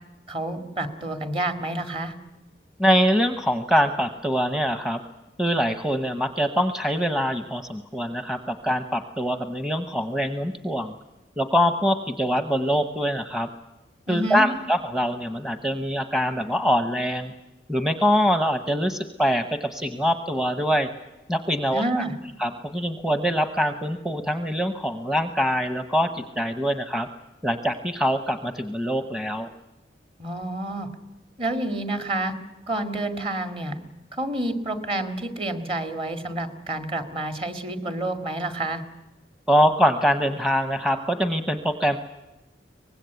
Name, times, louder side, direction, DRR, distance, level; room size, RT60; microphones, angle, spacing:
voice 1, 0.3-2.1 14.1-14.5 21.7-22.2 30.2-30.9 31.4-32.3 32.7-33.8 34.2-38.8, right 1 dB, 30° right, 8 dB, 2.2 m, -29 dB
voice 2, 2.8-5.0 5.4-11.0 11.4-13.5 14.1-17.3 17.7-20.9 21.3-22.0 22.4-27.1 27.4-29.5 39.5-42.0, equal, 5° right, 7 dB, 0.9 m, -24 dB
24.0 x 19.5 x 8.2 m, 1.0 s
head